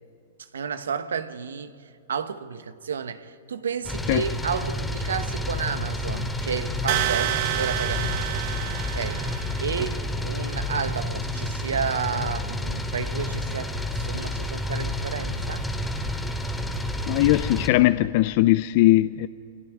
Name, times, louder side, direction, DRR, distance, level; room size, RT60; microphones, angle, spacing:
voice 1, 0.5-1.8 2.1-8.4 8.9-15.7, right 6 dB, 90° right, 1.2 m, -31 dB
sound 1, 3.8-17.7, left 1 dB, 5° left, 2.4 m, -30 dB
sound 2, 6.9-9.8, right 15 dB, 55° right, 0.8 m, -28 dB
voice 2, 17.1-19.3, left 17 dB, 55° left, 0.5 m, -19 dB
29.5 x 22.5 x 4.8 m
hypercardioid pair, 125°, 0 cm